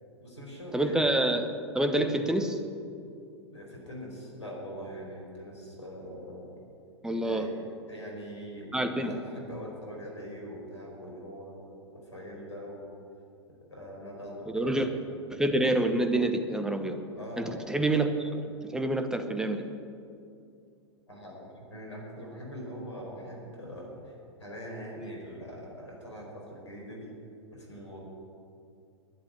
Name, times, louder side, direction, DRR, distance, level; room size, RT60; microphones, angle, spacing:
voice 1, 0.2-1.1 2.0-2.2 3.5-6.5 7.2-7.5 7.9-12.9 13.7-14.9 17.1-17.7 21.1-24.1 24.4-27.1 27.5-28.0, equal, 75° left, -1 dB, 4.7 m, -42 dB
voice 2, 0.7-2.6 7.0-7.5 8.7-9.1 14.5-14.9 15.3-17.0 17.4-19.6 25.0-25.1, right 1 dB, 5° right, 7 dB, 1.0 m, -27 dB
11.5 x 10.5 x 9.8 m, 2.5 s
figure-of-eight pair, 100°, 15 cm